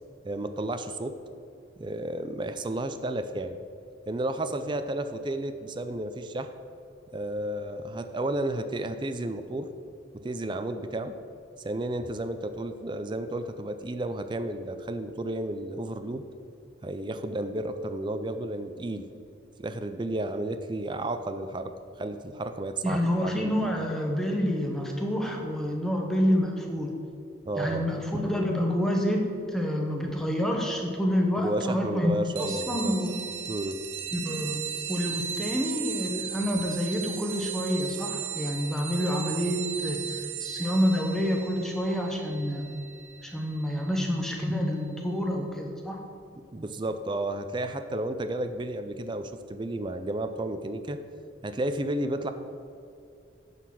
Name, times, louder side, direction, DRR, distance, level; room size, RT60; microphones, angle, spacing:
voice 1, 0.2-1.2 1.8-3.6 4.1-6.5 7.1-9.7 10.1-11.2 11.6-16.2 16.8-19.1 19.6-23.7 27.5-27.9 31.4-32.9 33.5-33.8 46.3-51.0 51.4-52.3, right 1 dB, 25° right, 9 dB, 0.4 m, -32 dB
voice 2, 22.8-26.9 27.6-29.2 29.5-32.1 32.4-33.2 34.1-34.6 34.9-42.6 43.2-46.0, equal, ahead, 0 dB, 1.0 m, -28 dB
sound 1, 32.4-44.5, right 8 dB, 80° right, 0.7 m, -36 dB
10.0 x 4.1 x 7.6 m, 2.4 s
head